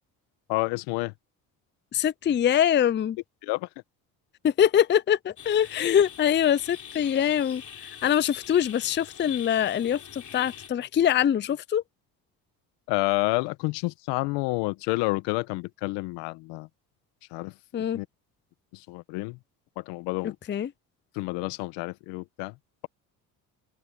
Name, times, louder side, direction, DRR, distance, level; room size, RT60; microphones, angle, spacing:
voice 1, 0.5-1.1 3.4-3.7 12.9-16.7 17.3-17.5 17.9-18.0 18.7-19.4 19.8-20.3 21.1-22.5, left 23 dB, 80° left, 1.4 m, -29 dB
voice 2, 1.9-3.2 4.4-11.8 17.7-18.0 20.5-20.7, left 9 dB, 25° left, 0.5 m, -24 dB
sound 1, 5.4-10.7, left 9 dB, 45° left, 3.6 m, -43 dB
open air
supercardioid pair, 65°, 42 cm